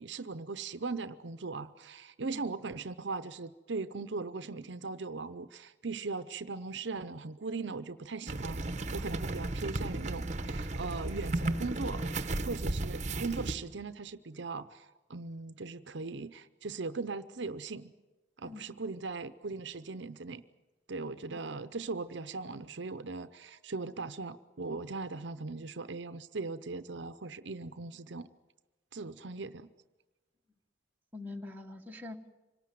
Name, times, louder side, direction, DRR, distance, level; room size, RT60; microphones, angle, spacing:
voice 1, 0.0-8.6 8.9-17.9 18.4-20.4 20.9-28.3 28.9-29.7, right 3 dB, 65° right, 12 dB, 0.7 m, -39 dB
sound 1, 8.3-13.5, right 2 dB, 40° right, 1.1 m, -34 dB
voice 2, 31.1-32.3, left 2 dB, 10° right, 1 dB, 1.5 m, -44 dB
26.0 x 18.5 x 9.2 m, 1.2 s
head